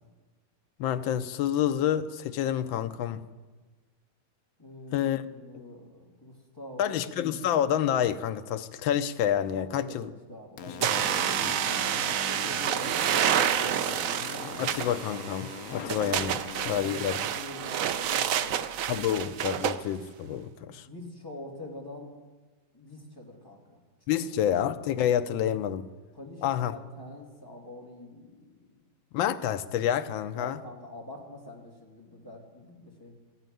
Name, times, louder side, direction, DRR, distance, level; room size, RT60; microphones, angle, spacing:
voice 1, 0.8-3.3 4.9-5.2 6.8-10.1 10.8-10.9 11.4-11.5 14.6-16.4 16.7-17.2 18.9-20.9 24.1-25.9 26.4-26.7 29.1-30.6, left 10 dB, 85° left, 1.4 m, -28 dB
voice 2, 4.6-7.1 9.5-14.7 16.3-18.7 20.7-22.1 22.7-24.2 26.1-28.8 30.3-33.2, left 1 dB, 10° left, 2.6 m, -45 dB
sound 1, 10.6-17.1, left 8 dB, 65° left, 0.8 m, -41 dB
sound 2, 10.8-19.8, right 9 dB, 85° right, 0.7 m, -29 dB
14.5 x 9.0 x 9.1 m
omnidirectional pair, 2.1 m